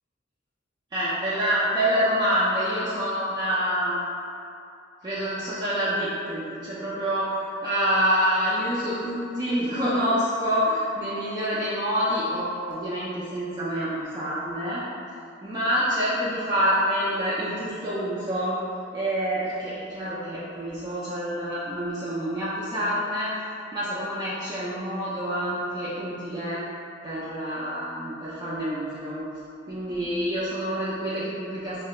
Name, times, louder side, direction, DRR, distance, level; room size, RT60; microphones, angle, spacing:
voice 1, 0.9-4.0 5.0-14.8 15.4-18.6 18.9-23.3 23.7-26.6 27.0-29.3 29.7-31.8, equal, 20° right, -9 dB, 0.3 m, -27 dB
3.1 x 2.2 x 2.8 m, 2.5 s
head